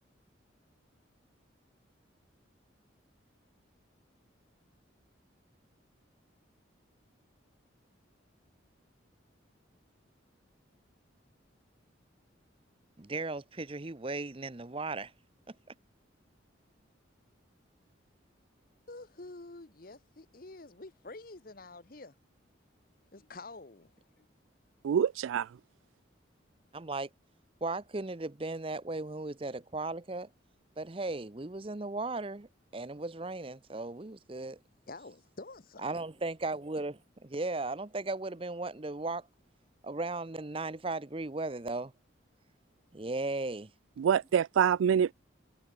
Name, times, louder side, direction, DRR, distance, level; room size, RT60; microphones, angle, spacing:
voice 1, 13.0-15.1 26.7-27.1 27.6-30.3 30.8-32.5 32.7-34.6 35.8-39.2 39.8-41.9 42.9-43.7, right 2 dB, 30° right, 0.7 m, -36 dB
voice 2, 18.9-22.2 23.1-24.3 34.9-35.9, left 2 dB, 45° left, 1.1 m, -48 dB
voice 3, 24.8-25.6 44.0-45.1, right 8 dB, 85° right, 0.3 m, -26 dB
head